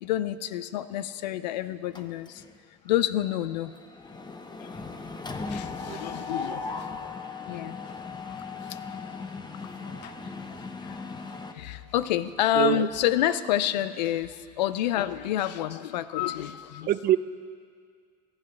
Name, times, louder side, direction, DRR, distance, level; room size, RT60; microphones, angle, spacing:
voice 1, 0.0-2.4 2.8-3.7 4.6-4.7 5.0-5.1 5.4-7.1 7.5-7.8 10.0-10.1 10.8-16.9, left 12 dB, 85° left, 15 dB, 0.5 m, -29 dB
Mechanisms, 2.0-2.6 2.9-3.1 3.4-11.5, left 4 dB, 20° left, 1.0 m, -38 dB
voice 2, 5.9-6.3 12.5-12.9 16.9-17.2, right 13 dB, 45° right, 14 dB, 0.5 m, -25 dB
23.5 x 8.7 x 3.2 m, 2.1 s
hypercardioid pair, 80°, 21 cm